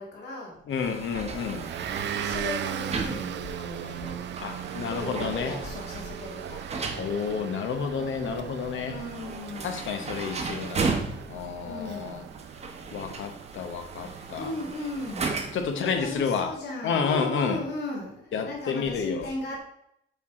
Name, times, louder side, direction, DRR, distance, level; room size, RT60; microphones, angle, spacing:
voice 1, 0.0-0.6 2.1-4.4 4.9-6.7 8.8-10.0 11.6-12.3 14.4-15.3 15.7-19.6, left 2 dB, 55° left, -2 dB, 2.1 m, -36 dB
voice 2, 0.7-1.7 4.4-5.5 7.0-9.0 9.6-11.0 11.3-12.2 12.9-14.5 15.5-16.6 16.8-17.6 18.3-19.3, left 6 dB, 75° left, 7 dB, 1.0 m, -30 dB
sound 1, 0.7-15.8, right 4 dB, 30° right, 0.9 m, -36 dB
Motor vehicle (road) / Engine, 1.3-15.5, right 10 dB, 60° right, 0.5 m, -38 dB
8.1 x 4.7 x 3.7 m, 0.74 s
wide cardioid pair, 180°, 21 cm